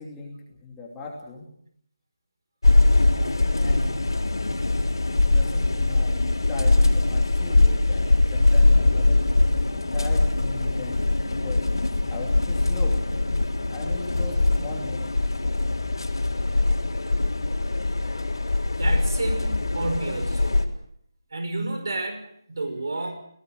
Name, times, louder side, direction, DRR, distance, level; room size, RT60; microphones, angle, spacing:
voice 1, 0.0-1.5 3.6-4.0 5.0-9.2 9.9-11.7 12.1-13.0 13.7-15.3, left 3 dB, 10° left, -1 dB, 2.7 m, -39 dB
sound 1, 2.6-20.6, left 2 dB, 85° left, 3.9 m, -22 dB
voice 2, 18.8-20.6 21.3-23.1, right 2 dB, 55° right, 7 dB, 5.3 m, -31 dB
30.0 x 17.5 x 6.5 m, 0.67 s
figure-of-eight pair, 175°, 2 cm